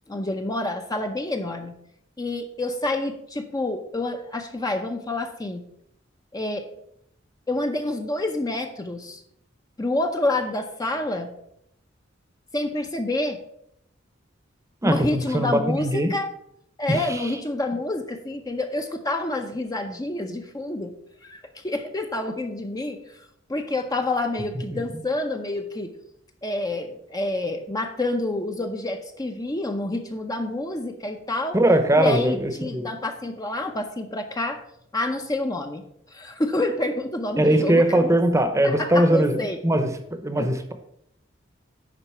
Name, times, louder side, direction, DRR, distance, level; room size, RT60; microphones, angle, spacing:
voice 1, 0.1-1.8 2.2-5.6 6.3-6.7 7.5-9.2 9.8-11.3 12.5-13.4 14.8-16.3 16.8-21.0 21.2-23.0 23.5-25.9 26.4-31.6 32.0-34.6 34.9-35.8 36.1-38.2 38.6-39.6 40.4-40.5, left 2 dB, 20° left, 5 dB, 0.6 m, -28 dB
voice 2, 14.8-16.1 16.9-17.3 24.7-25.0 31.5-32.9 37.4-39.4 39.6-39.9 40.2-40.7, right 1 dB, 15° right, 8 dB, 0.8 m, -21 dB
10.5 x 3.9 x 5.6 m, 0.73 s
head